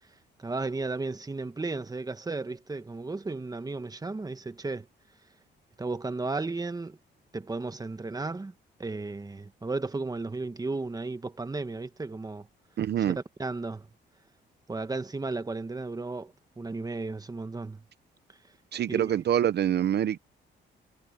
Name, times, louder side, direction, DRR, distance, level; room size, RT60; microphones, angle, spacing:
voice 1, 0.4-4.9 5.8-7.0 7.3-8.5 8.8-12.5 13.0-13.9 14.7-17.8 18.9-19.1, right 3 dB, 20° right, 1.5 m, -34 dB
voice 2, 12.8-13.2 18.7-20.2, right 10 dB, 55° right, 0.7 m, -25 dB
cardioid pair, 90°, 20 cm